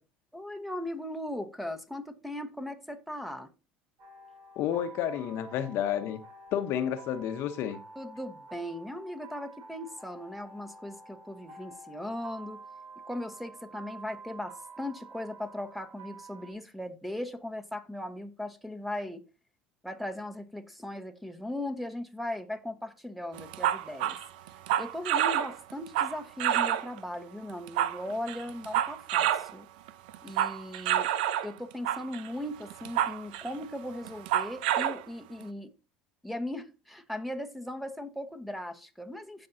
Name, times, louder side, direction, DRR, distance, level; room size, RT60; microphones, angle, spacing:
voice 1, 0.3-3.5 7.9-12.6 13.1-19.2 19.8-24.2 24.8-29.7 30.2-31.1 31.4-35.7 36.2-39.5, left 1 dB, ahead, 1.3 m, -38 dB
sound 1, 4.0-16.5, right 3 dB, 65° right, 2.7 m, -49 dB
voice 2, 4.6-6.2 6.5-7.8, left 10 dB, 60° left, 1.0 m, -30 dB
sound 2, 23.4-27.0 27.5-29.5 29.9-31.5 31.8-32.3 32.7-33.6 34.0-35.0, right 11 dB, 80° right, 0.7 m, -28 dB
16.0 x 5.3 x 2.8 m
supercardioid pair, 90°, 5 cm